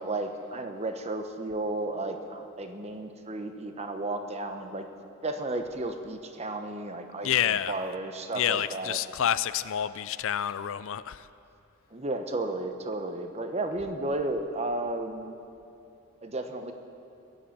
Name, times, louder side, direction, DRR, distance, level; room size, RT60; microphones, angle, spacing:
voice 1, 0.0-4.9 5.2-9.0 11.9-15.4 16.2-16.7, right 2 dB, 30° right, 6 dB, 1.0 m, -33 dB
voice 2, 7.2-7.8 8.3-11.3, left 10 dB, 60° left, 15 dB, 0.4 m, -28 dB
21.0 x 7.9 x 8.5 m, 2.6 s
head